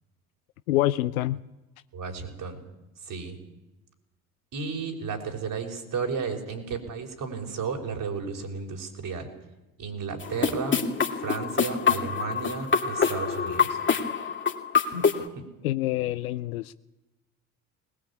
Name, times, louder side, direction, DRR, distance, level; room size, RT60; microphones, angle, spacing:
voice 1, 0.7-1.4 15.6-16.7, left 15 dB, 80° left, 13 dB, 0.7 m, -26 dB
voice 2, 1.9-2.6 3.0-3.4 4.5-9.3 9.8-10.8 11.1-13.8 14.9-15.0 15.4-15.5, right 5 dB, 50° right, 3 dB, 5.4 m, -33 dB
sound 1, 10.2-15.2, left 6 dB, 25° left, 2.7 m, -25 dB
20.5 x 20.0 x 8.6 m, 1.0 s
hypercardioid pair, 60°, 42 cm